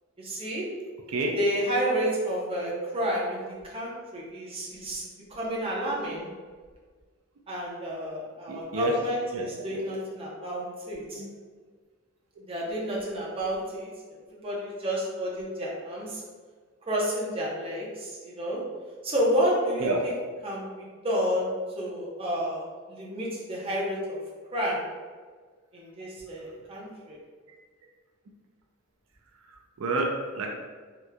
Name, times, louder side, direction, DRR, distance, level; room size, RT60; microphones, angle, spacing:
voice 1, 0.2-0.6 1.3-6.3 7.5-11.2 12.5-13.9 14.3-16.2 16.9-18.6 19.0-20.1 20.4-24.2 24.5-24.8 25.7-27.2, equal, 25° right, -5 dB, 0.7 m, -30 dB
voice 2, 8.5-9.0 9.3-9.4 9.7-9.8 11.1-11.3 19.8-20.0 29.8-30.5, right 2 dB, 85° right, 1 dB, 0.4 m, -28 dB
3.5 x 2.8 x 2.2 m, 1.5 s
head